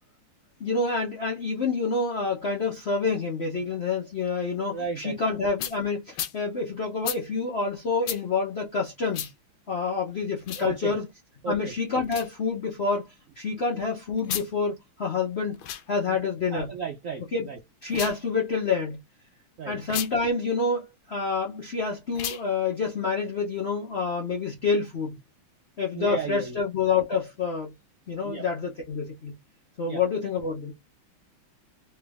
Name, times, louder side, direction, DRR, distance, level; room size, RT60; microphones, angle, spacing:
voice 1, 0.6-9.3 9.7-11.1 11.5-13.0 13.4-15.6 15.9-16.7 17.3-17.5 17.8-19.0 19.7-25.2 25.8-27.7 28.1-29.3 29.8-30.7, left 4 dB, 55° left, 0.7 m, -28 dB
voice 2, 4.7-5.2 10.6-10.9 11.4-11.7 16.1-16.2 16.5-17.6 19.6-19.7 25.9-26.6 28.2-28.4 29.9-30.0, right 5 dB, 75° right, 0.7 m, -33 dB
sound 1, 5.6-5.8 6.1-6.4 7.0-7.2 8.0-8.2 9.1-9.3 10.4-10.7 12.0-12.3 14.2-14.5 15.5-15.8 17.8-18.2 19.8-20.1 22.1-22.4, left 11 dB, 75° left, 1.3 m, -33 dB
3.4 x 3.1 x 3.4 m
omnidirectional pair, 2.3 m